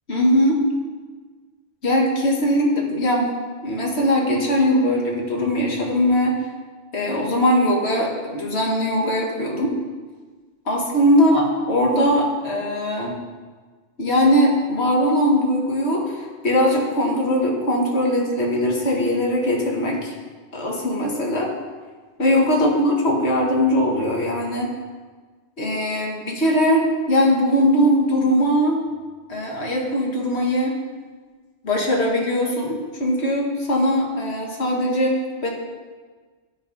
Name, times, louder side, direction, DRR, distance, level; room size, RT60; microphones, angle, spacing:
voice 1, 0.1-0.6 1.8-3.3 3.6-6.4 6.9-9.7 10.7-13.2 14.0-20.1 20.5-21.5 22.2-24.7 25.6-28.8 29.3-30.8 31.6-35.5, equal, 60° left, -1 dB, 2.1 m, -20 dB
15.0 x 5.0 x 5.5 m, 1.4 s
omnidirectional pair, 1.2 m